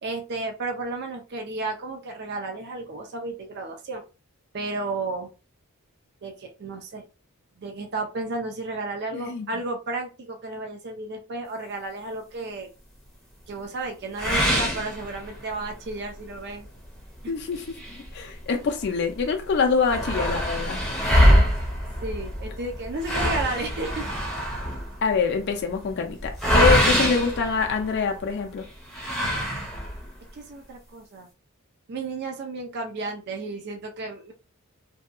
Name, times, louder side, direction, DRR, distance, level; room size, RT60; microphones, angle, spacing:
voice 1, 0.0-4.1 4.5-5.3 6.2-7.0 7.6-12.7 13.5-16.7 17.2-17.3 22.0-24.0 30.3-31.3 31.9-34.3, right 2 dB, 50° right, 0.4 m, -33 dB
voice 2, 9.1-9.5 17.3-17.6 18.1-20.8 25.0-28.7, left 5 dB, 50° left, 0.4 m, -25 dB
sound 1, 14.2-15.6 16.1-16.2 16.6-16.7 17.5-18.8 19.2-19.3 19.5-28.2 28.9-30.1, equal, ahead, 0.6 m, -24 dB
2.7 x 2.2 x 2.4 m
head